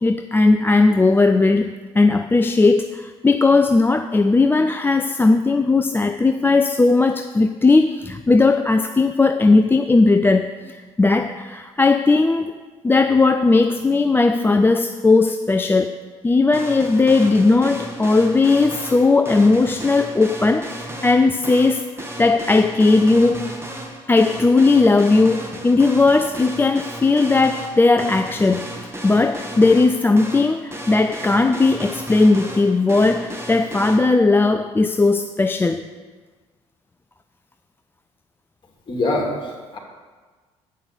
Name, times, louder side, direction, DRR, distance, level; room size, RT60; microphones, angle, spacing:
voice 1, 0.0-12.6 12.8-16.0 16.2-21.9 22.2-23.5 24.1-35.8, left 3 dB, 15° left, 8 dB, 0.4 m, -17 dB
sound 1, 16.5-34.0, right 1 dB, 15° right, 1.9 m, -34 dB
voice 2, 38.9-39.8, left 2 dB, 35° left, -1 dB, 2.7 m, -24 dB
8.7 x 5.5 x 7.0 m, 1.4 s
hypercardioid pair, 55°, 15 cm